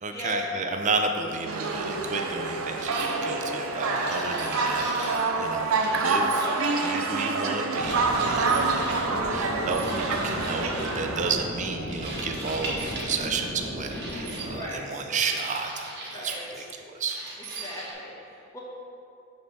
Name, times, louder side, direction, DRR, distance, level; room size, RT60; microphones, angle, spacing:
voice 1, 0.0-6.5 6.8-17.2, right 4 dB, 35° right, 4 dB, 0.5 m, -32 dB
sound 1, 1.5-11.4, right 3 dB, 85° right, 0.6 m, -27 dB
sound 2, 2.8-3.1 3.9-5.3 5.7-7.0 7.7-9.0 9.7-11.0 11.9-13.4 13.9-14.5 15.2-16.5 17.1-17.9, right 2 dB, 55° right, 1.1 m, -39 dB
sound 3, 7.7-14.6, equal, 65° left, 1.1 m, -36 dB
voice 2, 14.5-15.0 16.1-16.5 17.6-18.6, left 1 dB, 15° left, -5 dB, 1.2 m, -38 dB
5.2 x 4.1 x 6.0 m, 2.6 s
head